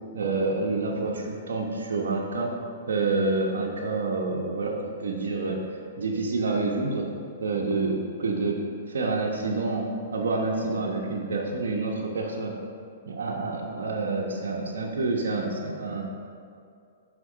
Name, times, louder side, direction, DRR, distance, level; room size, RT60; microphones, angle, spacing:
voice 1, 0.1-2.5 2.9-5.6 6.0-7.1 7.4-8.6 8.9-12.5 13.1-16.0, right 3 dB, 80° right, -2 dB, 1.1 m, -28 dB
6.3 x 5.5 x 6.1 m, 2.3 s
hypercardioid pair, 135°, 0 cm